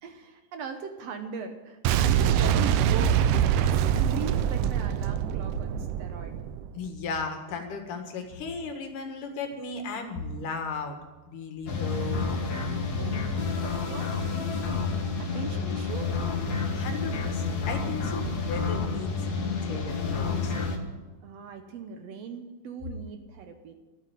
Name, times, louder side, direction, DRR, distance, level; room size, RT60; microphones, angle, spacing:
voice 1, 0.0-6.5 12.8-16.2 21.2-23.7, right 6 dB, 65° right, 6 dB, 1.8 m, -40 dB
Boom, 1.8-6.8, right 9 dB, 85° right, 2.2 m, -24 dB
voice 2, 6.7-11.0 11.3-12.2 16.7-20.6, left 4 dB, 85° left, 5 dB, 3.3 m, -35 dB
sound 1, 11.7-20.8, left 4 dB, 45° left, 1.5 m, -29 dB
13.5 x 8.4 x 9.9 m, 1.2 s
omnidirectional pair, 3.6 m